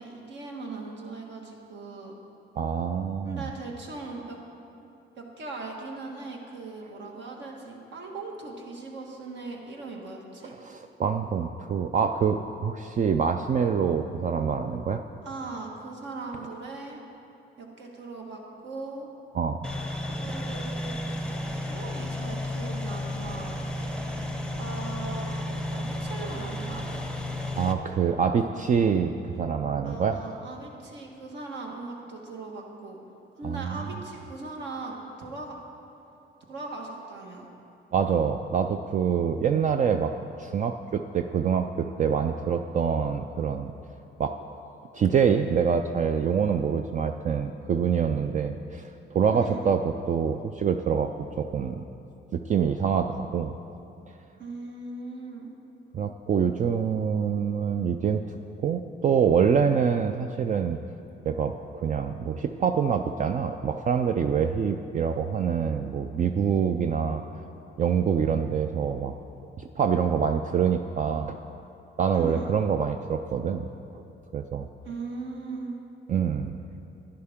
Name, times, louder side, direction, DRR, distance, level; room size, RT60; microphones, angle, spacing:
voice 1, 0.0-2.1 3.2-4.4 5.2-10.5 15.2-17.0 17.6-19.1 20.2-21.1 21.7-23.6 24.6-25.3 25.7-26.8 29.8-33.0 33.3-35.6 36.5-37.5 49.3-49.6 54.4-55.5 72.1-72.5 74.8-75.8, right 3 dB, 65° right, 0 dB, 1.6 m, -39 dB
voice 2, 2.6-3.4 10.6-15.0 19.3-19.6 27.5-30.4 33.4-33.8 37.9-40.1 40.4-43.7 44.2-44.3 44.9-51.1 51.4-51.8 52.3-53.5 55.9-58.2 58.6-60.8 61.2-67.2 67.8-69.1 69.6-71.4 72.0-74.0 74.3-74.7 76.1-76.6, right 7 dB, 40° right, 6 dB, 0.4 m, -25 dB
sound 1, 19.6-27.7, left 1 dB, 5° left, 0.8 m, -32 dB
11.0 x 10.5 x 3.6 m, 2.7 s
cardioid pair, 90°, 20 cm